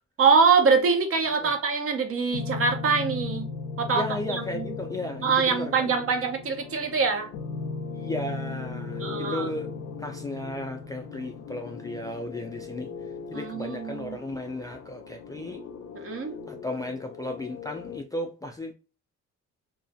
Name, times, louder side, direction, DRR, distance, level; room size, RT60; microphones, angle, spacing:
voice 1, 0.2-3.5 3.8-4.6 5.2-7.3 9.0-9.5 13.3-14.2 15.9-16.3, right 5 dB, 50° right, 0.6 m, -24 dB
sound 1, 2.3-18.0, left 4 dB, 85° left, 0.5 m, -38 dB
voice 2, 3.9-6.0 7.9-9.7 10.0-12.9 13.3-15.6 16.5-18.7, left 1 dB, 10° left, 0.3 m, -35 dB
2.3 x 2.0 x 2.6 m
cardioid pair, 90°, 30 cm